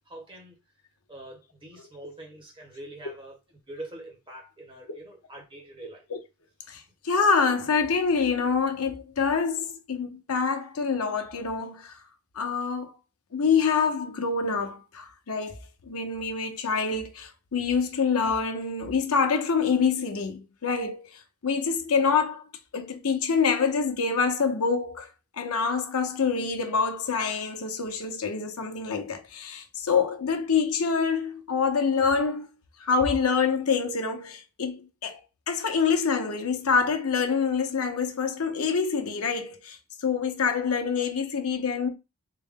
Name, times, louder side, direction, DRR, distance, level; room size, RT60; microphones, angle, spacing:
voice 1, 0.1-0.6 1.1-3.4 3.7-6.0, right 1 dB, 25° right, 1.2 m, -44 dB
voice 2, 6.7-12.0 12.3-12.9 13.3-22.4 22.7-25.1 25.4-32.5 32.8-35.2 35.5-41.9, left 5 dB, 75° left, 0.8 m, -26 dB
3.8 x 2.1 x 3.6 m
head